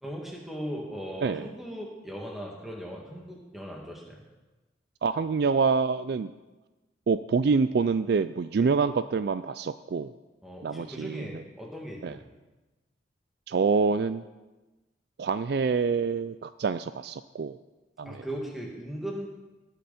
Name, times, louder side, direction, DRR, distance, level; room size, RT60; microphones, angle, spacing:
voice 1, 0.0-4.2 8.6-8.7 10.4-12.3 18.0-19.3, equal, ahead, -2 dB, 2.3 m, -38 dB
voice 2, 5.0-6.3 7.1-10.1 10.6-11.4 12.0-12.2 13.5-14.2 15.2-17.6 18.0-18.2, right 5 dB, 55° right, 13 dB, 0.3 m, -26 dB
19.0 x 9.0 x 4.3 m, 1.1 s
head